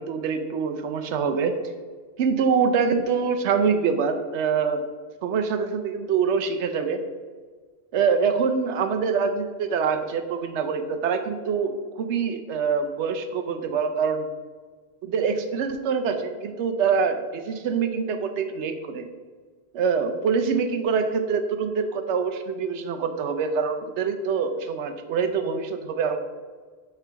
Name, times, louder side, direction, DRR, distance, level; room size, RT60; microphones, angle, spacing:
voice 1, 0.0-1.5 2.2-4.8 5.2-7.0 7.9-14.3 15.0-19.1 19.7-26.2, right 6 dB, 75° right, 7 dB, 0.9 m, -25 dB
5.7 x 3.5 x 5.7 m, 1.5 s
omnidirectional pair, 1.2 m